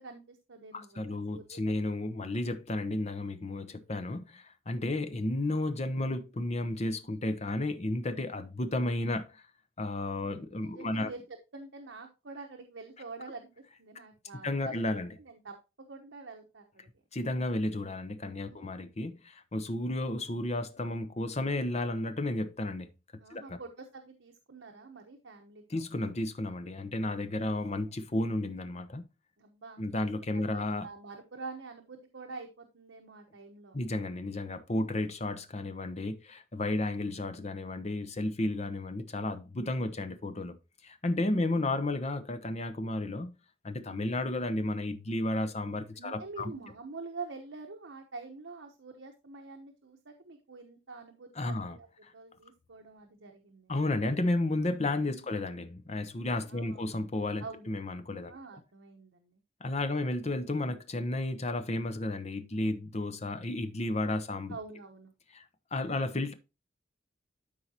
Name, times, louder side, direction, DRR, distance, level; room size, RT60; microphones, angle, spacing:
voice 1, 0.0-1.8 10.1-14.8 15.2-16.9 18.3-18.7 23.2-25.8 29.4-30.1 30.5-33.8 41.2-41.4 45.9-51.9 52.1-53.7 55.1-55.3 56.5-56.9 57.4-57.7 58.3-59.4 64.5-65.1, right 4 dB, 75° right, 1.0 m, -46 dB
voice 2, 0.7-9.4 9.8-11.1 14.4-15.1 17.1-22.9 23.3-23.6 25.7-29.0 29.8-30.9 33.7-40.6 40.8-43.3 43.6-46.5 51.4-51.8 52.0-52.1 53.7-58.4 59.6-64.6 65.3-65.4 65.7-66.3, left 2 dB, 35° left, 0.9 m, -32 dB
12.5 x 4.7 x 2.9 m
head